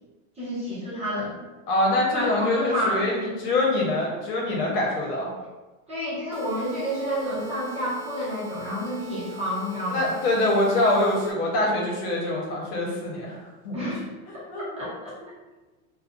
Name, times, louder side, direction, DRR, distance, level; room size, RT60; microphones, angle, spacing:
voice 1, 0.4-1.4 2.1-3.0 5.9-10.1 13.7-14.4 14.8-15.1, equal, 15° right, -9 dB, 0.9 m, -29 dB
voice 2, 1.7-5.3 9.9-13.3 13.6-13.9 14.3-14.8 15.1-15.2, left 1 dB, 80° left, -2 dB, 1.1 m, -24 dB
sound 1, 6.3-11.3, right 3 dB, 75° right, 0.6 m, -42 dB
2.5 x 2.3 x 2.5 m, 1.1 s
supercardioid pair, 145°, 45 cm